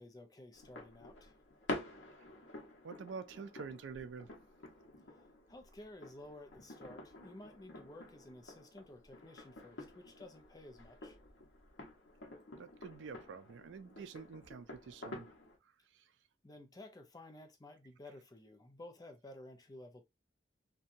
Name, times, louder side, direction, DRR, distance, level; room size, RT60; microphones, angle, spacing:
voice 1, 0.0-1.4 5.5-11.2 16.4-20.0, left 1 dB, 20° left, 0.4 m, -54 dB
sound 1, 0.5-15.6, left 1 dB, 90° left, 0.8 m, -49 dB
voice 2, 2.8-4.3 12.6-15.3 15.9-16.0, right 5 dB, 85° right, 0.4 m, -47 dB
2.7 x 2.2 x 2.5 m
head